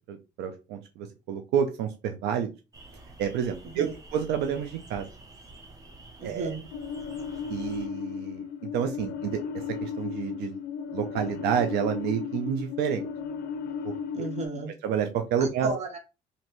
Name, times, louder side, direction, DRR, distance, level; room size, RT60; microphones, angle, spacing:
voice 1, 0.1-2.5 3.2-5.1 6.2-6.5 7.5-8.4 8.7-9.4 9.8-10.6 10.9-13.1 13.8-13.9 14.8-15.8, right 8 dB, 85° right, 6 dB, 0.5 m, -29 dB
sound 1, 2.7-7.9, right 2 dB, 20° right, 0.8 m, -49 dB
voice 2, 6.2-6.7 14.1-14.7 15.4-16.0, right 3 dB, 40° right, 3 dB, 1.1 m, -33 dB
sound 2, 6.7-14.5, left 6 dB, 75° left, 0.4 m, -35 dB
3.0 x 2.7 x 2.9 m, 0.29 s
cardioid pair, 110°, 17 cm